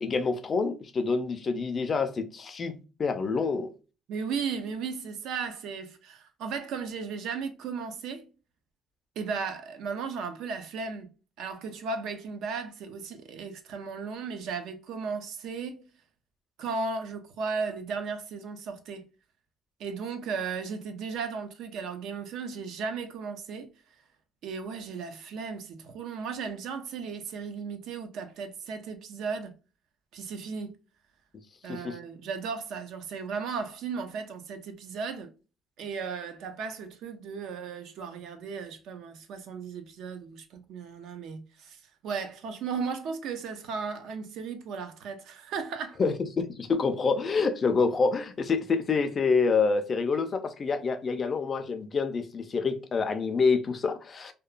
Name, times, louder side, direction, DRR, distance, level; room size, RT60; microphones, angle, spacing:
voice 1, 0.0-2.7 3.0-3.7 31.7-32.0 46.0-54.3, left 4 dB, 30° left, 0.3 m, -27 dB
voice 2, 4.1-8.3 9.2-11.1 11.4-15.9 16.6-19.1 19.8-23.7 24.4-29.5 30.1-30.7 31.6-35.3 35.8-46.0, right 5 dB, 70° right, 0.5 m, -35 dB
2.8 x 2.1 x 2.3 m
cardioid pair, 160°, 0 cm